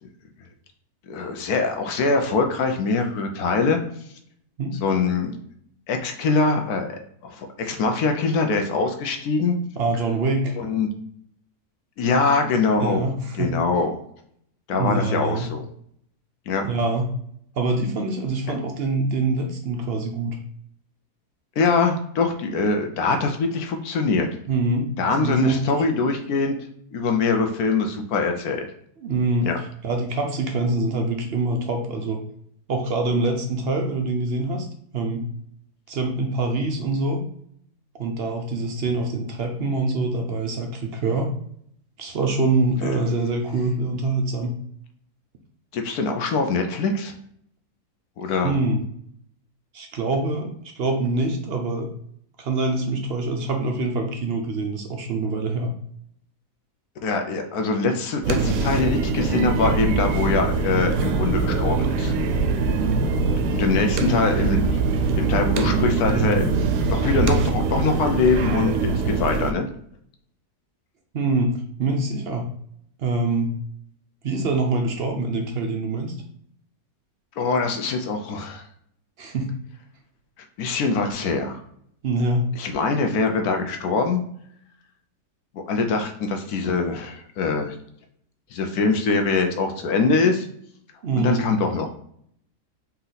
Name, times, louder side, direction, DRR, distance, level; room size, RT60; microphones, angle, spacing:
voice 1, 1.1-3.8 4.8-5.3 5.9-9.6 10.6-10.9 12.0-13.1 13.3-14.0 14.7-15.7 16.5-16.7 21.6-24.3 25.0-26.5 26.9-28.7 29.4-29.6 42.8-43.0 45.7-47.1 48.2-48.5 57.0-62.1 63.5-64.8 65.2-66.5 66.9-69.7 77.4-78.7 80.6-81.6 82.6-84.2 85.5-87.8 88.5-90.5 91.2-91.9, left 4 dB, 70° left, 5 dB, 1.1 m, -23 dB
voice 2, 9.8-10.5 12.8-13.6 14.7-15.5 16.6-17.1 17.6-20.4 24.5-24.9 25.2-26.0 29.0-29.5 29.8-32.2 32.7-34.7 34.9-35.2 35.9-37.2 38.0-41.3 42.0-44.5 48.4-48.8 49.7-51.9 52.4-55.7 71.1-72.5 73.0-73.5 74.2-76.1 79.2-79.5 82.0-82.5 91.0-91.5, right 2 dB, 65° right, 3 dB, 0.6 m, -24 dB
sound 1, 58.2-69.5, right 4 dB, 85° right, 1.2 m, -23 dB
4.4 x 2.8 x 3.9 m, 0.66 s
omnidirectional pair, 1.7 m